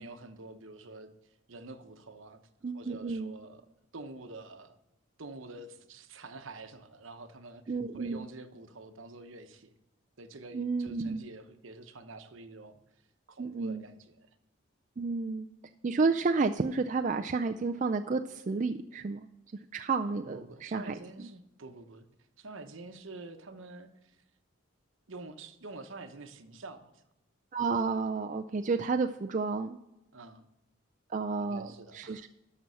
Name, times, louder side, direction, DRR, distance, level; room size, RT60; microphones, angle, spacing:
voice 1, 0.0-2.4 2.7-3.6 3.9-4.8 5.2-9.7 10.2-12.8 13.3-14.3 20.2-22.1 22.4-24.2 25.1-27.0 30.1-30.5 31.4-32.3, right 3 dB, 75° right, 1.0 m, -47 dB
voice 2, 2.6-3.3 7.7-8.2 10.5-11.2 13.4-13.8 15.0-15.5 15.8-19.3 19.7-21.3 27.5-29.8 31.1-31.7 31.9-32.3, right 4 dB, 35° right, 0.4 m, -31 dB
12.5 x 6.0 x 5.6 m
head